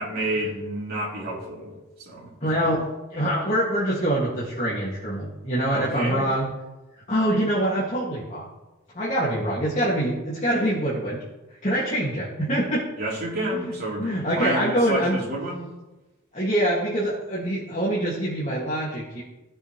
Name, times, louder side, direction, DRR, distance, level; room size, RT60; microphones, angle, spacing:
voice 1, 0.0-2.3 5.7-6.3 13.0-15.7, right 1 dB, 45° right, -5 dB, 3.6 m, -30 dB
voice 2, 2.4-2.8 3.1-6.5 7.1-8.5 8.9-11.2 11.6-12.9 13.5-13.7 14.0-15.2 16.3-19.2, right 1 dB, 35° left, -7 dB, 2.3 m, -24 dB
17.5 x 7.2 x 3.3 m, 1.1 s
head